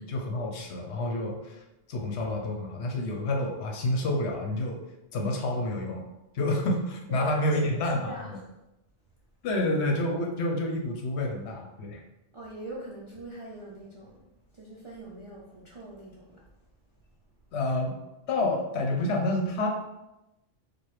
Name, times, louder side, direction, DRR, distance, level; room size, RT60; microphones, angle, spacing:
voice 1, 0.0-1.6 1.9-4.8 5.1-6.0 6.3-8.4 9.4-12.0 17.5-17.9 18.3-19.7, left 1 dB, 70° left, 2 dB, 0.9 m, -29 dB
voice 2, 7.1-8.5 12.3-14.3 14.5-16.4, right 1 dB, 50° right, -5 dB, 0.3 m, -43 dB
4.7 x 2.3 x 3.0 m, 0.95 s
omnidirectional pair, 1.2 m